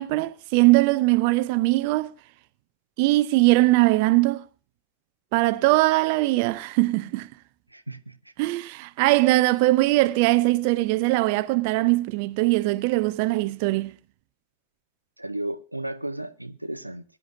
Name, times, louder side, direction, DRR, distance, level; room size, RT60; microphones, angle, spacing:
voice 1, 0.0-2.1 3.0-4.4 5.3-7.3 8.4-13.9, right 20 dB, 45° right, 0.7 m, -21 dB
voice 2, 7.7-8.1 15.2-17.0, right 1 dB, 85° right, 0.7 m, -33 dB
22.0 x 10.5 x 2.5 m
figure-of-eight pair, 90°, 0 cm